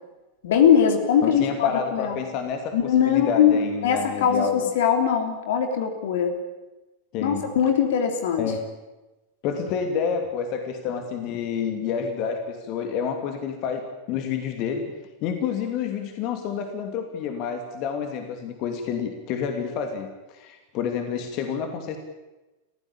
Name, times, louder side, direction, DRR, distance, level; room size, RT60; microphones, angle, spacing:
voice 1, 0.4-2.2 2.7-6.4 7.2-8.4, left 8 dB, 55° left, 6 dB, 3.2 m, -21 dB
voice 2, 1.2-4.6 7.1-7.5 8.4-8.6 9.4-14.9 15.2-22.0, left 7 dB, 40° left, 6 dB, 2.9 m, -29 dB
29.5 x 15.5 x 8.8 m, 1.1 s
figure-of-eight pair, 90°, 0 cm